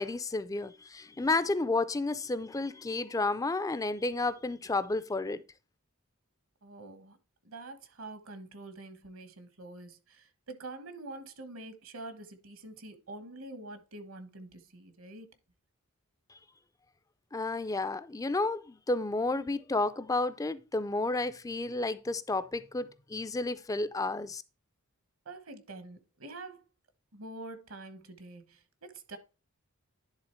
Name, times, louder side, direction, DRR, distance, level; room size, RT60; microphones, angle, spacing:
voice 1, 0.0-5.4 17.3-24.4, left 2 dB, 15° left, 0.4 m, -31 dB
voice 2, 6.6-7.2 7.4-15.3 25.2-26.6 27.1-29.2, right 2 dB, 65° right, 1.2 m, -46 dB
10.5 x 3.7 x 4.4 m
head